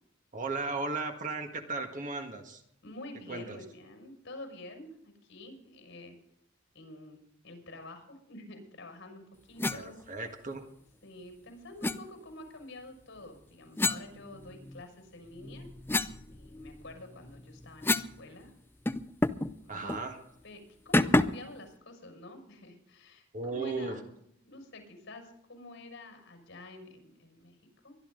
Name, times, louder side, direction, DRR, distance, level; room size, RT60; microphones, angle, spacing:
voice 1, 0.3-2.6 3.3-3.6 9.7-10.6 19.7-20.2 23.3-24.0, right 3 dB, 40° right, 5 dB, 1.7 m, -36 dB
voice 2, 2.8-6.1 6.7-10.0 11.0-15.7 16.3-18.5 19.6-20.0 20.4-24.1 24.4-28.0, left 2 dB, 65° left, 4 dB, 5.9 m, -48 dB
sound 1, 9.6-9.8 11.8-12.0 13.8-14.8 15.3-18.2 18.5-18.6 18.9-19.5 19.9-20.1 20.9-21.5, left 2 dB, 10° left, 0.5 m, -30 dB
23.0 x 12.0 x 3.9 m, 0.73 s
head